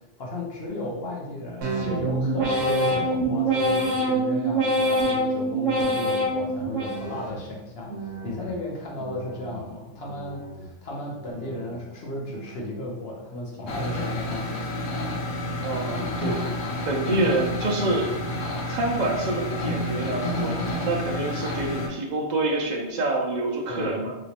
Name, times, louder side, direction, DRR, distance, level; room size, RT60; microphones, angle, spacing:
voice 1, 0.0-14.7 23.7-24.1, left 1 dB, 55° left, -3 dB, 0.9 m, -35 dB
sound 1, 1.6-7.4 7.9-8.5 8.9-9.6 10.0-10.7 11.1-11.7 12.2-12.8, right 1 dB, 80° right, 1.0 m, -26 dB
sound 2, 13.7-21.9, left 1 dB, 85° left, 1.1 m, -29 dB
voice 2, 15.6-16.4 16.9-18.1 18.4-24.2, right 2 dB, 55° right, 1 dB, 0.5 m, -27 dB
3.0 x 2.9 x 2.8 m, 1.0 s
omnidirectional pair, 1.3 m